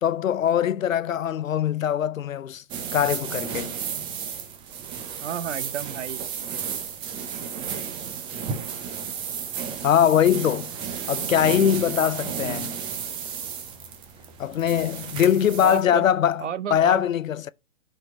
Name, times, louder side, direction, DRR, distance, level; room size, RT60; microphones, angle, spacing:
voice 1, 0.0-2.6 2.9-3.8 9.8-10.7 11.1-12.8 14.4-17.5, left 9 dB, 75° left, 0.6 m, -22 dB
sound 1, 2.7-15.8, right 7 dB, 10° right, 0.6 m, -33 dB
voice 2, 5.2-6.2 12.4-12.7 15.6-16.0 16.4-17.0, right 9 dB, 60° right, 0.9 m, -32 dB
11.5 x 4.4 x 3.0 m
figure-of-eight pair, 125°, 40 cm